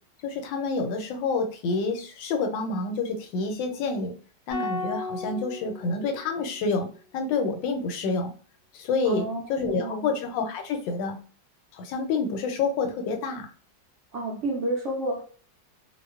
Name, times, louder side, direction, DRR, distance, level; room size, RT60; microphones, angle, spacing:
voice 1, 0.2-4.1 4.5-8.3 8.7-11.2 11.7-13.5, left 4 dB, 90° left, 5 dB, 1.3 m, -28 dB
sound 1, 4.5-6.8, left 3 dB, 70° left, 0.9 m, -35 dB
voice 2, 9.0-10.1 14.1-15.2, right 1 dB, 75° right, -3 dB, 0.6 m, -30 dB
2.9 x 2.1 x 2.3 m, 0.41 s
omnidirectional pair, 1.9 m